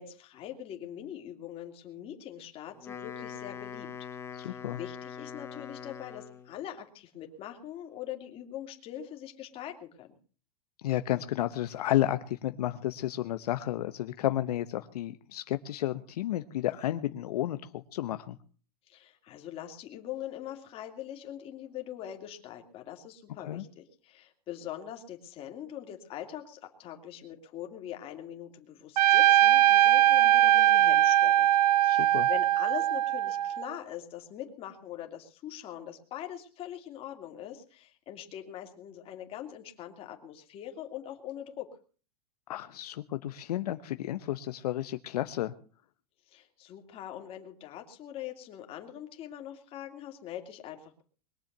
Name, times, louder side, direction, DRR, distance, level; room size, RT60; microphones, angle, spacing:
voice 1, 0.0-3.9 4.4-10.1 18.9-31.5 31.8-41.7 46.3-51.0, left 11 dB, 30° left, 4 dB, 2.7 m, -42 dB
Wind instrument woodwind instrument, 2.7-6.6, left 8 dB, 10° left, 1.2 m, -43 dB
voice 2, 4.4-4.8 10.8-18.4 23.4-23.6 31.9-32.3 42.5-45.5, left 13 dB, 75° left, 10 dB, 1.0 m, -32 dB
Trumpet, 29.0-33.7, right 13 dB, 80° right, 0.9 m, -21 dB
22.0 x 7.5 x 8.0 m, 0.41 s
supercardioid pair, 155°, 20 cm